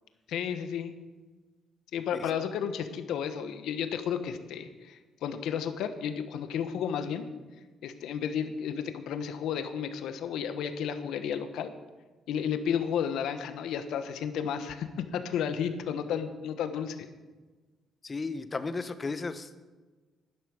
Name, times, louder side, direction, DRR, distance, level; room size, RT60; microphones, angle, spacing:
voice 1, 0.3-0.9 1.9-7.2 7.8-11.7 12.3-17.1, left 8 dB, 80° left, 9 dB, 1.1 m, -32 dB
voice 2, 18.0-19.6, left 3 dB, 30° left, 11 dB, 1.0 m, -35 dB
12.0 x 10.5 x 6.5 m, 1.3 s
cardioid pair, 90°, 0 cm